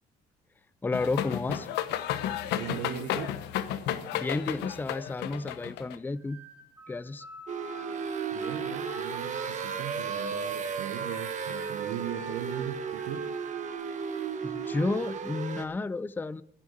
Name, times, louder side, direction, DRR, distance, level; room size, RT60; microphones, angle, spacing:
voice 1, 0.8-1.7 4.1-6.4 6.9-7.2 14.4-16.4, left 3 dB, 10° left, 0.4 m, -32 dB
sound 1, 0.9-6.0, left 11 dB, 85° left, 1.1 m, -32 dB
voice 2, 2.6-3.4 8.3-13.3, right 9 dB, 85° right, 1.2 m, -38 dB
sound 2, 6.2-13.7, equal, 10° right, 1.5 m, -51 dB
sound 3, 7.5-15.6, right 6 dB, 45° right, 1.5 m, -34 dB
11.5 x 7.1 x 9.0 m
cardioid pair, 110°, 17 cm